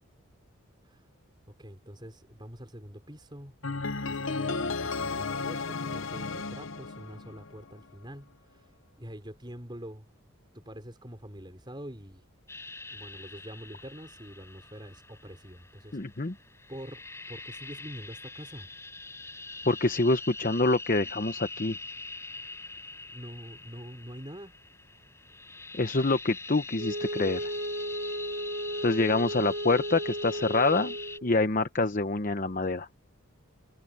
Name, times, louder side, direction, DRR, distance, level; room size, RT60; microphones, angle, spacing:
voice 1, 1.6-8.7 9.0-10.1 10.5-12.2 12.9-16.0 16.7-18.7 23.1-24.5 29.3-29.5, equal, 20° right, 5.3 m, -45 dB
sound 1, 3.6-7.7, left 4 dB, 65° left, 0.9 m, -33 dB
sound 2, 12.5-31.2, left 3 dB, 15° left, 6.6 m, -43 dB
voice 2, 15.9-16.3 19.7-21.8 25.8-27.5 28.8-31.0 31.2-32.9, left 2 dB, 40° left, 0.9 m, -26 dB
Wind instrument woodwind instrument, 26.7-31.4, right 1 dB, 55° right, 3.6 m, -35 dB
head